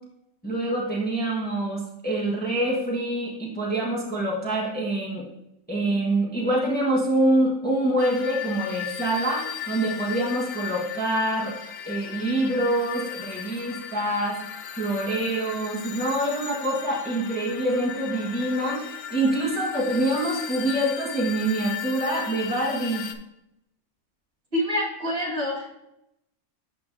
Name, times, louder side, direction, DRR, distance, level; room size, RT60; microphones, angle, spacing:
voice 1, 0.4-5.3 5.7-11.5 11.9-14.4 14.7-23.0, right 1 dB, 5° left, -5 dB, 1.3 m, -25 dB
sound 1, 8.0-23.1, left 9 dB, 60° left, 0.8 m, -36 dB
voice 2, 24.5-25.7, left 1 dB, 40° right, -6 dB, 2.3 m, -26 dB
11.5 x 4.5 x 2.7 m, 0.83 s
omnidirectional pair, 1.4 m